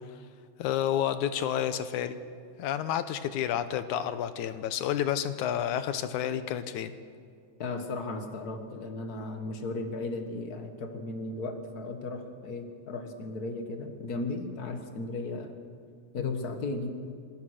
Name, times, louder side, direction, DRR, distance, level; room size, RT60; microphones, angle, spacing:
voice 1, 0.6-2.2 2.6-6.9 16.2-16.4, left 10 dB, 75° left, 11 dB, 2.0 m, -30 dB
voice 2, 7.6-15.6 16.1-16.9, left 2 dB, 50° left, 6 dB, 1.1 m, -36 dB
26.5 x 16.0 x 6.5 m, 2.2 s
omnidirectional pair, 3.9 m